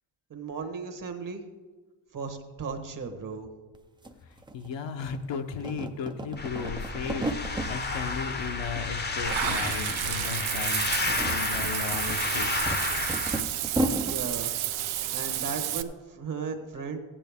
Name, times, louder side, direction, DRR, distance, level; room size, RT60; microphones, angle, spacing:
voice 1, 0.3-1.4 2.1-3.5 14.1-14.5 14.9-17.0, right 5 dB, 40° right, 6 dB, 1.2 m, -36 dB
sound 1, 3.7-3.8 4.0-5.2 5.5-7.7 8.1-8.9 9.1-10.0 10.2-10.4 10.9-14.2, right 1 dB, 10° right, 0.4 m, -33 dB
voice 2, 4.3-12.7, left 6 dB, 60° left, 7 dB, 0.9 m, -36 dB
sound 2, 6.4-13.4, left 3 dB, 20° left, 0.7 m, -31 dB
Water / Bathtub (filling or washing), 9.2-15.8, right 12 dB, 70° right, 0.6 m, -31 dB
14.5 x 8.7 x 3.5 m, 1.3 s
cardioid pair, 115°, 50 cm